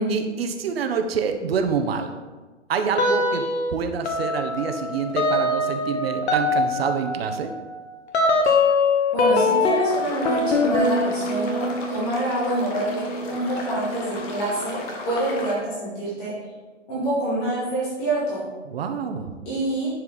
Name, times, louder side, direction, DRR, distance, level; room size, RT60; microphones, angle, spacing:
voice 1, 0.1-2.1 2.7-3.5 3.7-7.5 18.7-19.4, right 6 dB, 55° right, 6 dB, 1.0 m, -26 dB
sound 1, 3.0-3.7 4.1-14.4, left 3 dB, 60° left, 1.3 m, -24 dB
voice 2, 9.1-14.8 15.0-16.3 16.9-18.4 19.5-19.9, right 1 dB, 5° left, -8 dB, 0.3 m, -26 dB
sound 2, 9.9-15.5, left 2 dB, 30° left, 1.3 m, -36 dB
11.0 x 4.6 x 4.0 m, 1.3 s
hypercardioid pair, 140°, 37 cm